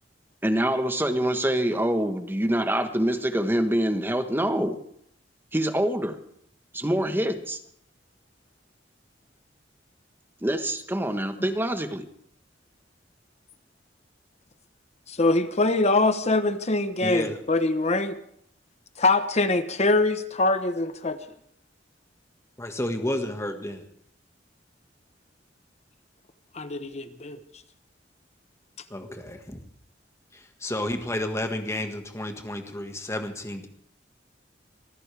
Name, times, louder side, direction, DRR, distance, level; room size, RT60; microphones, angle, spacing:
voice 1, 0.4-4.8 5.5-6.2 6.7-7.6 10.4-12.0, right 1 dB, 10° right, 7 dB, 1.3 m, -25 dB
voice 2, 15.1-18.2 19.0-21.2 26.5-27.4, left 2 dB, 40° left, 10 dB, 1.0 m, -23 dB
voice 3, 17.0-17.4 22.6-23.9 28.9-29.6 30.3-33.7, left 1 dB, 15° left, 5 dB, 1.7 m, -31 dB
25.5 x 14.5 x 3.5 m, 0.67 s
head